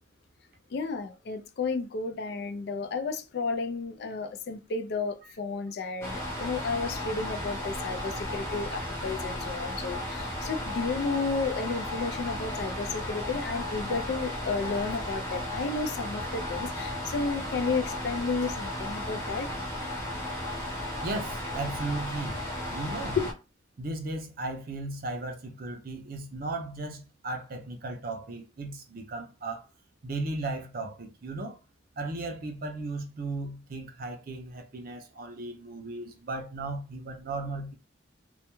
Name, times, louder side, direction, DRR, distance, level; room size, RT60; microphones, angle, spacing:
voice 1, 0.7-19.5 23.2-23.3, left 4 dB, 55° left, 0.3 m, -32 dB
sound 1, 6.0-23.3, left 1 dB, 15° left, 0.7 m, -35 dB
voice 2, 21.0-22.4 22.7-23.2 23.8-29.7 30.0-31.6 32.0-37.7, right 2 dB, 45° right, 0.5 m, -36 dB
2.2 x 2.2 x 2.9 m
head